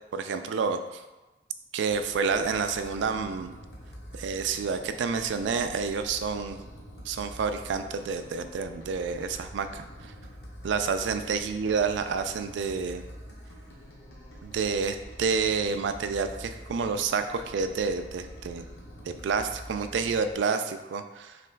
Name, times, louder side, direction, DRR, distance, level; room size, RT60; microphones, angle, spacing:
voice 1, 0.1-1.0 1.7-3.5 4.1-6.6 7.1-10.1 10.6-13.0 14.4-18.6 19.1-21.4, right 5 dB, 90° right, 8 dB, 0.3 m, -29 dB
sound 1, 1.9-20.4, equal, 65° left, 0.9 m, -46 dB
5.7 x 2.9 x 2.3 m, 1.1 s
head